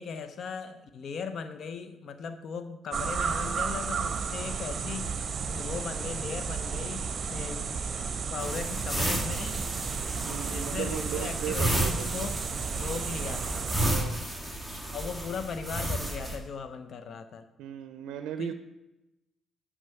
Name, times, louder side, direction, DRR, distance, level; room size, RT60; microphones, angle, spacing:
voice 1, 0.0-5.2 5.5-7.9 8.3-9.8 10.1-12.4 12.7-13.7 14.9-17.5 18.4-18.5, left 5 dB, 60° left, 9 dB, 0.7 m, -38 dB
sound 1, 2.9-13.9, right 5 dB, 45° right, 1.0 m, -33 dB
sound 2, 8.4-16.4, right 1 dB, 10° left, 1.9 m, -33 dB
voice 2, 10.3-12.1 13.8-14.3 17.6-18.5, right 10 dB, 90° right, 9 dB, 0.4 m, -36 dB
7.9 x 6.3 x 5.8 m, 0.97 s
cardioid pair, 90°, 0 cm